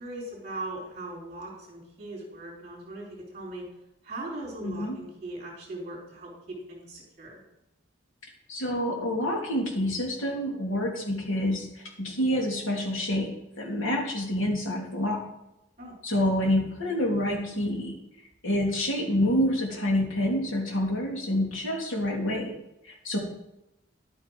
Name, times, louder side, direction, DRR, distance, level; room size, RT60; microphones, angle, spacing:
voice 1, 0.0-3.6 4.0-7.4 15.8-15.9, right 2 dB, 35° right, -4 dB, 3.8 m, -39 dB
voice 2, 4.6-4.9 8.5-15.2 16.0-18.0 18.4-22.5 22.9-23.2, left 1 dB, 90° left, -1 dB, 3.2 m, -27 dB
11.0 x 8.6 x 4.7 m, 0.89 s
head